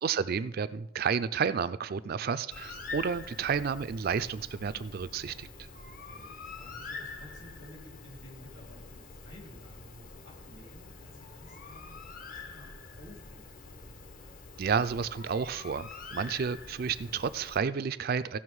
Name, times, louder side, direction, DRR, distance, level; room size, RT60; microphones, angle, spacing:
voice 1, 0.0-5.7 14.6-18.4, right 6 dB, 45° right, 12 dB, 0.4 m, -31 dB
Bird, 2.5-17.6, left 3 dB, 45° left, 0.8 m, -46 dB
voice 2, 5.7-12.0 12.3-14.1, left 1 dB, 65° left, -1 dB, 3.7 m, -53 dB
15.5 x 5.7 x 4.7 m, 0.82 s
head